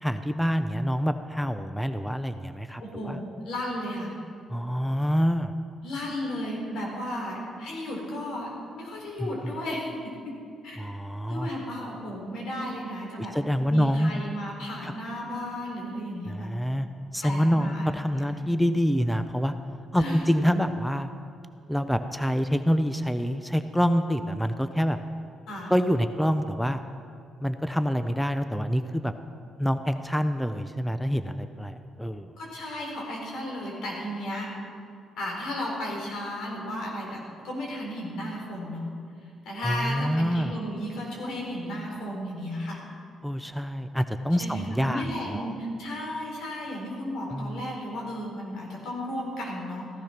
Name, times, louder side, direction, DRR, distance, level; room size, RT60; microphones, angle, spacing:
voice 1, 0.0-3.2 4.5-5.5 9.2-9.5 10.8-11.5 13.3-14.1 14.8-14.9 16.3-16.9 17.1-19.5 19.9-21.1 21.7-25.0 25.7-26.8 27.4-29.1 29.6-32.3 39.6-40.5 43.2-45.0 45.3-45.5 47.3-47.6, equal, 5° left, 9 dB, 0.6 m, -26 dB
voice 2, 2.8-4.1 5.8-9.9 10.2-10.3 10.6-10.8 11.3-13.3 13.7-16.5 17.2-18.4 19.9-20.2 25.5-25.7 32.4-34.5 35.2-38.9 39.4-42.8 44.4-49.9, left 1 dB, 80° left, -2 dB, 4.3 m, -34 dB
15.5 x 12.5 x 5.9 m, 2.4 s
cardioid pair, 90°, 0 cm